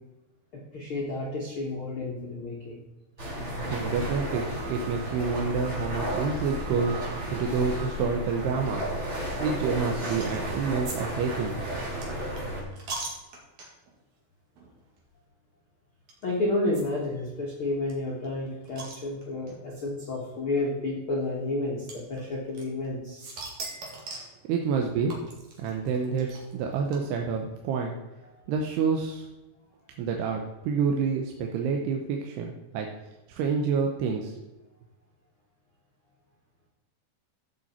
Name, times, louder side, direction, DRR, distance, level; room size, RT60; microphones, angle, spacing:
voice 1, 0.7-2.7 16.2-23.4, left 2 dB, 70° left, -3 dB, 1.2 m, -31 dB
sound 1, 3.2-12.6, right 1 dB, 20° right, 1.9 m, -33 dB
voice 2, 3.7-8.9 9.4-11.6 12.1-12.2 24.5-25.2 25.6-28.0 28.5-29.3 30.0-32.9 33.3-34.4, right 5 dB, 80° right, 2 dB, 2.8 m, -28 dB
sound 2, 10.2-10.5 10.9-11.0 11.2-13.9 14.6-14.7 15.0-15.1 16.1-16.2 16.7-16.8 17.1-17.2 17.4-17.5 17.9-19.5 20.4-20.5 21.9-22.9 23.2-24.4 25.1-27.4, right 3 dB, 50° right, 2.9 m, -40 dB
15.0 x 5.7 x 4.4 m, 1.1 s
omnidirectional pair, 4.9 m